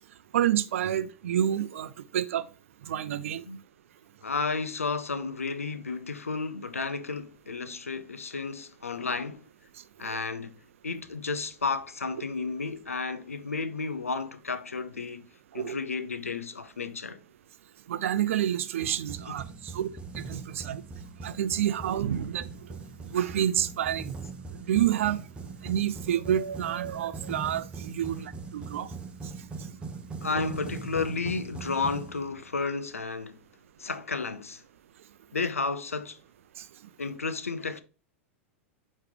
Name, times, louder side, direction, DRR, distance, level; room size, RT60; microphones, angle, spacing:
voice 1, 0.3-2.4 2.9-3.4 15.5-15.8 17.9-19.4 19.7-19.9 20.2-20.8 21.2-22.5 23.1-24.1 24.7-25.2 25.6-28.9, right 10 dB, 70° right, 0.5 m, -28 dB
voice 2, 4.2-9.5 10.0-15.3 15.5-17.2 19.3-19.4 20.6-20.7 30.2-33.4 33.8-34.6 35.3-36.2 37.0-37.8, left 4 dB, 90° left, 0.6 m, -32 dB
sound 1, 18.8-32.7, right 4 dB, 15° right, 0.9 m, -41 dB
8.9 x 3.2 x 3.4 m
hypercardioid pair, 95°, 7 cm